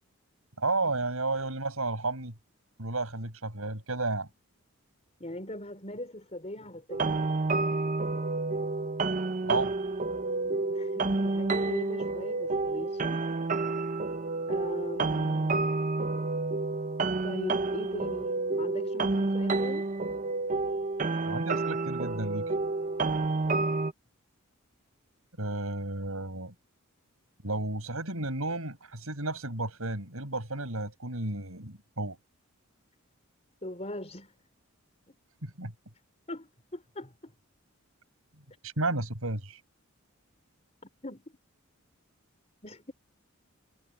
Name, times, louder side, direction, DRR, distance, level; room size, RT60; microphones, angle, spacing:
voice 1, 0.6-2.3 2.8-4.3 9.4-9.7 21.2-22.5 25.4-26.5 27.4-32.2 35.4-35.7 38.6-39.6, right 2 dB, 80° right, 6.2 m, -32 dB
voice 2, 5.2-7.2 10.4-13.3 14.5-15.6 17.2-19.8 23.5-23.7 33.6-34.3 36.3-37.3 41.0-41.2 42.6-42.9, left 1 dB, 30° left, 4.7 m, -40 dB
sound 1, 6.9-23.9, right 3 dB, 35° right, 0.8 m, -29 dB
head